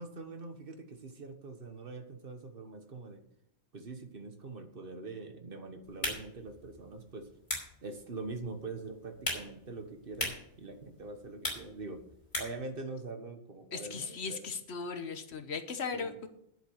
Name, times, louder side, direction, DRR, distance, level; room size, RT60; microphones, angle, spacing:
voice 1, 0.0-3.2 3.7-7.3 7.8-12.0 12.4-14.5 15.9-16.1, right 3 dB, 55° right, 7 dB, 1.5 m, -43 dB
sound 1, 5.8-12.7, equal, 30° left, 4.2 m, -41 dB
voice 2, 13.7-16.3, left 5 dB, 70° left, 8 dB, 1.4 m, -37 dB
10.5 x 7.6 x 6.4 m, 0.77 s
omnidirectional pair, 1.1 m